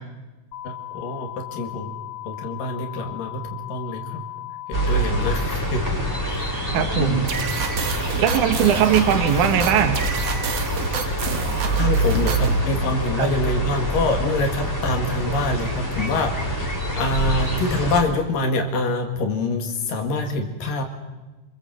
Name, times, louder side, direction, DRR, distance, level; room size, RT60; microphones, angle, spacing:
sound 1, 0.5-5.5, left 15 dB, 55° left, 2.2 m, -36 dB
voice 1, 0.6-1.9 2.3-3.4 3.7-4.2 4.7-6.0 6.3-7.3 11.8-16.6 17.0-20.8, left 2 dB, 85° left, 3 dB, 3.8 m, -25 dB
sound 2, 4.7-18.0, right 1 dB, 5° left, 3.6 m, -25 dB
voice 2, 6.7-7.2 8.2-10.1 13.2-13.3, right 9 dB, 70° right, 6 dB, 2.9 m, -20 dB
sound 3, 7.3-12.6, right 6 dB, 55° right, 2.4 m, -30 dB
28.0 x 22.0 x 7.7 m, 1.2 s
omnidirectional pair, 3.8 m